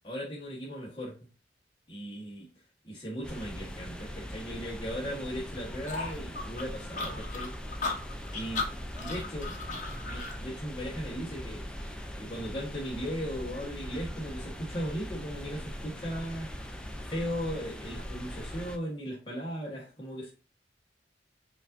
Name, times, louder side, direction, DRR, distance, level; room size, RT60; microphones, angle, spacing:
voice 1, 0.0-1.1 1.9-2.5 2.8-7.5 8.3-8.7 9.0-9.7 10.1-11.7 12.2-16.5 17.1-20.3, equal, 25° left, -5 dB, 1.3 m, -37 dB
sound 1, 3.2-18.8, equal, 5° left, 0.4 m, -41 dB
sound 2, 5.9-10.4, left 3 dB, 45° left, 1.0 m, -36 dB
5.1 x 2.6 x 2.6 m, 0.35 s
head